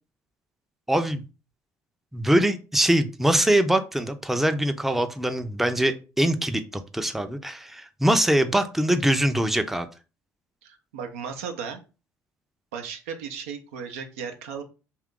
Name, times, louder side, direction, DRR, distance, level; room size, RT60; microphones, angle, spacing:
voice 1, 0.9-1.2 2.1-9.9, right 1 dB, 5° right, 8 dB, 0.4 m, -23 dB
voice 2, 10.6-11.8 12.7-14.6, right 6 dB, 90° right, 6 dB, 0.5 m, -35 dB
2.8 x 2.4 x 3.6 m, 0.33 s
hypercardioid pair, 65°, 7 cm